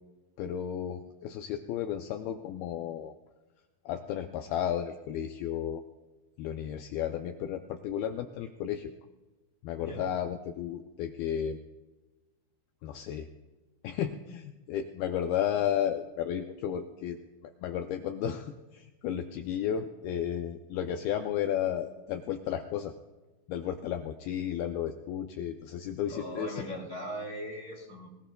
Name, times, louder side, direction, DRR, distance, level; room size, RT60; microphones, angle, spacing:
voice 1, 0.4-3.2 3.9-5.8 6.4-8.9 9.6-11.6 12.8-13.3 13.8-22.9 23.5-26.6, left 9 dB, 80° left, 6 dB, 2.2 m, -33 dB
voice 2, 26.1-28.1, equal, 25° right, -3 dB, 1.7 m, -39 dB
21.5 x 19.0 x 2.3 m, 1.2 s
omnidirectional pair, 5.0 m